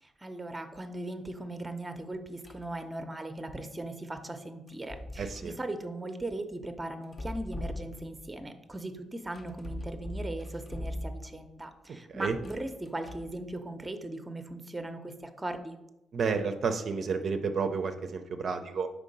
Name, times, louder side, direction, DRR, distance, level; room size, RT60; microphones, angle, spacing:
voice 1, 0.0-15.8, right 1 dB, 15° right, 7 dB, 0.6 m, -39 dB
sound 1, 2.4-2.8 4.7-5.6 7.0-8.3 9.3-11.5 12.3-13.4, left 1 dB, 35° left, 0.7 m, -40 dB
voice 2, 5.2-5.5 12.1-12.4 16.1-18.9, right 5 dB, 55° right, 7 dB, 0.5 m, -31 dB
4.8 x 3.7 x 5.2 m, 0.93 s
cardioid pair, 90°, 0 cm